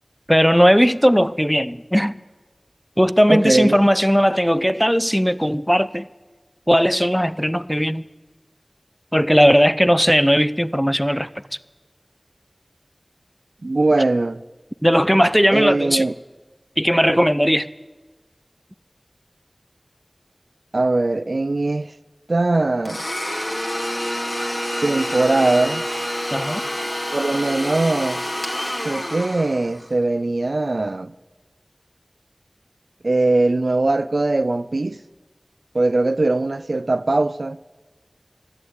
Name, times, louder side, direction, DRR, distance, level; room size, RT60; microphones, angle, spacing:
voice 1, 0.3-2.2 3.0-6.1 6.7-8.0 9.1-11.3 14.8-16.1 16.8-17.7 26.3-26.6, equal, ahead, 0.4 m, -17 dB
voice 2, 3.3-3.8 13.6-14.4 15.5-16.1 20.7-21.9 22.3-23.0 24.8-25.8 27.1-28.2 28.8-31.1 33.0-35.0 35.7-37.6, right 2 dB, 80° right, 0.4 m, -20 dB
Domestic sounds home sounds, 22.9-29.9, equal, 40° left, 2.1 m, -27 dB
13.5 x 9.5 x 8.8 m
wide cardioid pair, 50°, 0 cm